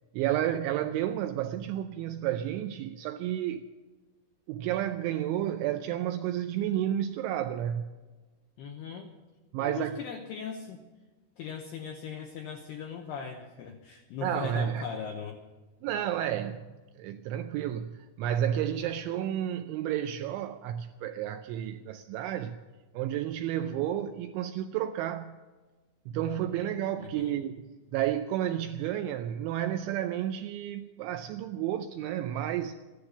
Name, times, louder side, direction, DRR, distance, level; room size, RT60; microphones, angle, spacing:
voice 1, 0.1-3.7 4.5-7.9 9.5-10.0 14.2-14.8 15.8-16.7 17.0-22.6 22.9-25.4 26.1-32.7, right 11 dB, 85° right, 2.7 m, -31 dB
voice 2, 8.6-9.1 9.6-10.8 11.4-15.4 27.0-27.4, left 6 dB, 85° left, 2.3 m, -39 dB
14.5 x 11.5 x 6.8 m
omnidirectional pair, 5.9 m